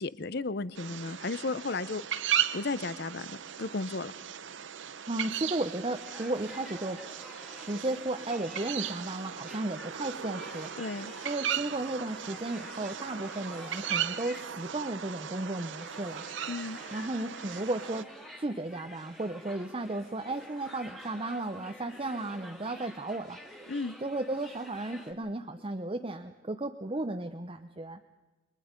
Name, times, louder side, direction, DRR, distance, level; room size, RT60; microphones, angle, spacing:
voice 1, 0.0-2.0 2.5-4.1 10.8-11.1 16.5-16.8 23.7-24.0, left 3 dB, 50° left, 17 dB, 0.6 m, -34 dB
sound 1, 0.7-18.0, right 9 dB, 60° right, 0.7 m, -37 dB
voice 2, 5.1-7.0 7.6-10.7 11.2-16.2 16.9-18.1 18.4-23.4 24.0-28.0, right 2 dB, 25° right, 6 dB, 0.7 m, -34 dB
sound 2, 5.4-25.1, equal, ahead, 1.9 m, -50 dB
29.5 x 22.0 x 5.2 m, 1.2 s
head